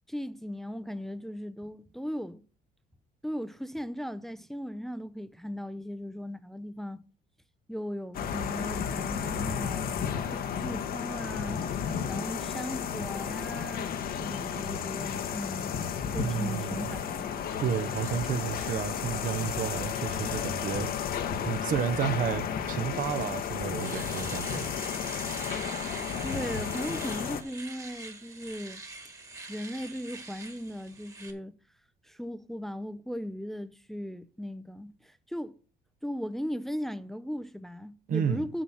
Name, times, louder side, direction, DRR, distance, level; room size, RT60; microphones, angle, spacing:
voice 1, 0.1-2.4 3.2-7.0 7.7-15.8 16.1-17.3 26.2-28.8 29.5-31.5 32.0-35.5 36.0-38.6, equal, ahead, 0.5 m, -37 dB
sound 1, 8.1-27.4, left 8 dB, 60° left, 1.0 m, -33 dB
voice 2, 16.1-16.9 17.6-20.9 21.4-24.7 38.1-38.4, right 8 dB, 55° right, 0.8 m, -31 dB
Domestic sounds home sounds, 23.7-31.3, right 3 dB, 20° right, 1.5 m, -43 dB
7.5 x 7.0 x 5.6 m
cardioid pair, 110°, 17 cm